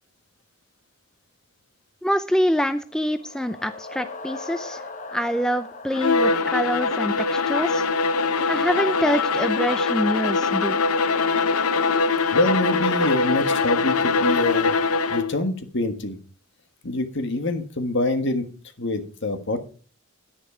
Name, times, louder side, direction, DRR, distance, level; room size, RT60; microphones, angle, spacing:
voice 1, 2.0-4.8 5.1-7.9 8.5-10.8, equal, 5° left, 10 dB, 0.4 m, -25 dB
sound 1, 2.8-7.7, left 3 dB, 35° left, 1.4 m, -40 dB
Bowed string instrument, 5.9-15.4, left 4 dB, 80° left, 0.8 m, -22 dB
voice 2, 12.3-14.7 15.1-16.2 16.8-18.4 18.8-19.6, left 2 dB, 55° left, 8 dB, 1.5 m, -25 dB
10.5 x 9.9 x 5.0 m, 0.39 s
head